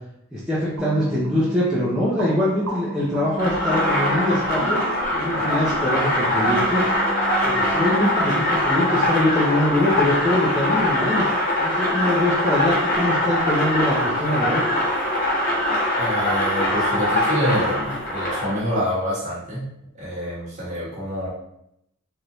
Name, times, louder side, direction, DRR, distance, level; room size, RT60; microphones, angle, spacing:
voice 1, 0.3-6.9 7.4-11.2 11.6-14.6, left 1 dB, 5° right, -9 dB, 0.5 m, -23 dB
sound 1, 0.8-8.3, right 3 dB, 90° right, 0.8 m, -34 dB
sound 2, 3.4-18.6, left 1 dB, 45° left, 1.0 m, -22 dB
voice 2, 15.9-19.7 20.0-21.3, equal, 35° right, -7 dB, 1.1 m, -27 dB
3.4 x 2.6 x 3.0 m, 0.78 s
head